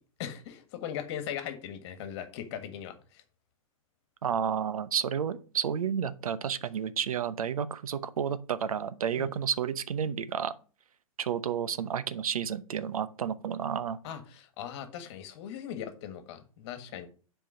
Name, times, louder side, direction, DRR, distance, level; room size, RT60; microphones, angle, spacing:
voice 1, 0.2-3.2 9.2-9.3 14.0-17.1, left 9 dB, 50° left, 9 dB, 1.6 m, -39 dB
voice 2, 4.2-10.5 11.2-14.0, right 8 dB, 75° right, 14 dB, 0.8 m, -31 dB
7.4 x 4.6 x 5.5 m, 0.36 s
hypercardioid pair, 115°, 18 cm